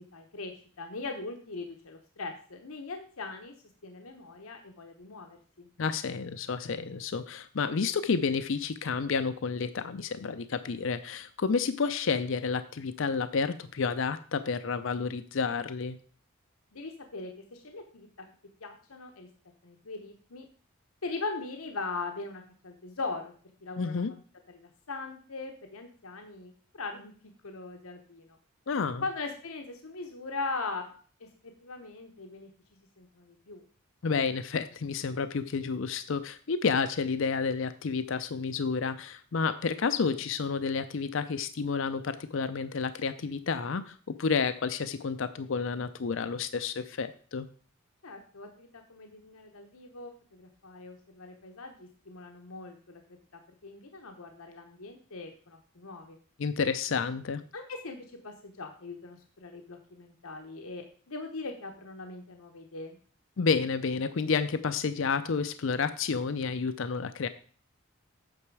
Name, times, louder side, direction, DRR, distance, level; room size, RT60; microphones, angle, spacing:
voice 1, 0.0-3.5 3.8-5.7 16.7-18.1 18.6-19.3 19.6-20.5 21.0-23.3 23.6-24.0 24.5-27.1 27.4-28.4 29.0-30.9 31.2-31.3 31.6-32.5 33.0-33.6 48.0-53.0 53.3-56.2 57.5-63.0, left 3 dB, 85° left, 4 dB, 1.0 m, -40 dB
voice 2, 5.8-16.0 23.8-24.1 28.7-29.0 34.0-47.5 56.4-57.4 63.4-67.3, left 5 dB, 60° left, 11 dB, 0.5 m, -30 dB
8.7 x 6.0 x 4.7 m, 0.43 s
head